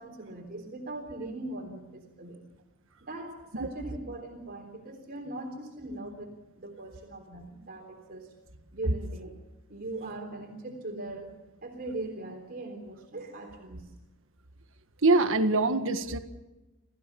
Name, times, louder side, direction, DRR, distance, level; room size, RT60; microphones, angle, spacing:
voice 1, 0.0-2.4 3.0-8.3 8.7-9.3 9.7-11.3 11.6-13.9, right 2 dB, 45° right, 2 dB, 3.5 m, -40 dB
voice 2, 15.0-16.2, right 2 dB, 65° right, 8 dB, 1.7 m, -24 dB
28.0 x 15.5 x 7.1 m, 1.1 s
head